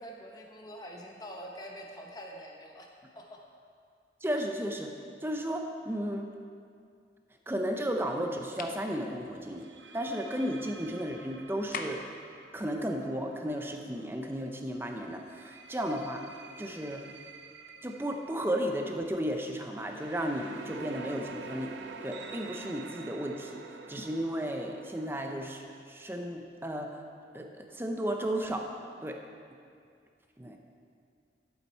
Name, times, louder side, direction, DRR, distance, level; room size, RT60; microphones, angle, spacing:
voice 1, 0.0-2.9 3.1-3.4, equal, 20° left, 0 dB, 0.9 m, -45 dB
voice 2, 4.2-4.9 5.2-6.3 7.5-9.7 9.9-12.0 12.5-17.0 17.8-21.7 22.0-23.6 23.9-26.9 27.3-28.7 29.0-29.2 30.4-30.6, equal, 10° right, 3 dB, 0.6 m, -34 dB
sound 1, 7.8-8.1 9.6-14.3 15.1-25.6, right 5 dB, 85° right, 0.6 m, -48 dB
sound 2, 8.6-8.8 11.7-12.2, left 4 dB, 50° left, 0.6 m, -38 dB
11.5 x 7.2 x 4.3 m, 2.3 s
head